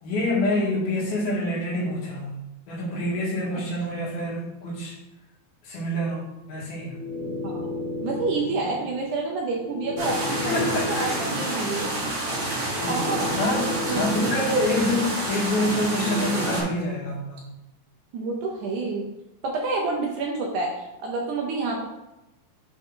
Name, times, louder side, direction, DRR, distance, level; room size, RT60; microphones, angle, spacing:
voice 1, 0.0-2.3 2.7-5.0 5.6-7.0 10.3-11.6 12.8-13.0 13.4-17.4, left 1 dB, 85° left, -6 dB, 3.9 m, -27 dB
sound 1, 6.5-15.2 15.5-16.5, left 2 dB, 35° right, 0.8 m, -34 dB
voice 2, 8.0-11.9 12.9-14.3 18.1-19.1 19.4-21.8, right 3 dB, 70° right, 0 dB, 2.0 m, -29 dB
sound 2, 10.0-16.6, right 2 dB, 50° right, 3.9 m, -29 dB
10.0 x 3.7 x 3.8 m, 0.93 s
omnidirectional pair, 4.2 m